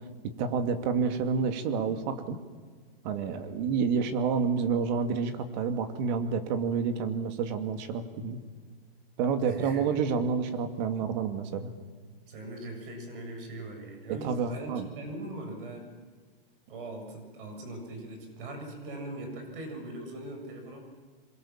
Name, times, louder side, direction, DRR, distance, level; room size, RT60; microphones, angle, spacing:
voice 1, 0.4-2.4 3.0-8.4 9.2-11.7 14.1-14.9, right 6 dB, 50° right, 8 dB, 2.6 m, -29 dB
voice 2, 9.4-10.0 12.3-15.9 16.7-20.8, right 2 dB, 65° right, 4 dB, 7.6 m, -41 dB
27.0 x 23.0 x 7.5 m, 1.5 s
hypercardioid pair, 135°, 30 cm